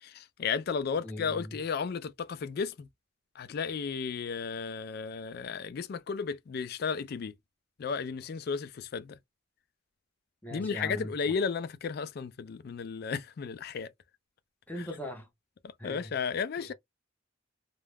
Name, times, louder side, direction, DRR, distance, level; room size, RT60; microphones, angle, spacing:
voice 1, 0.0-2.9 3.4-7.4 7.8-9.2 10.5-13.9 14.8-14.9 15.6-16.7, left 5 dB, 50° left, 0.3 m, -34 dB
voice 2, 1.0-1.5 10.4-11.1 14.7-15.3 15.8-16.1 16.6-16.7, equal, 10° left, 0.6 m, -40 dB
2.3 x 2.1 x 3.2 m
head